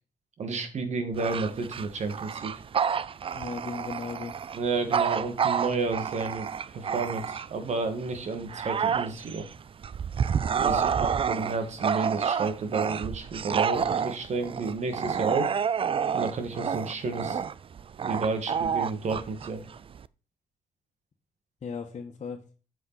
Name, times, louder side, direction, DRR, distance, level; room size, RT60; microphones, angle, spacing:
voice 1, 0.4-2.5 4.5-9.5 10.6-15.5 16.1-17.4 18.0-19.6, right 4 dB, 55° right, 7 dB, 2.4 m, -31 dB
Bark / Growling, 1.1-7.7 8.2-20.1, right 7 dB, 40° right, 0.5 m, -29 dB
voice 2, 3.3-4.3 10.6-10.8 21.6-22.4, left 5 dB, 50° left, 0 dB, 1.6 m, -37 dB
7.9 x 7.3 x 4.3 m, 0.33 s
cardioid pair, 70°, 14 cm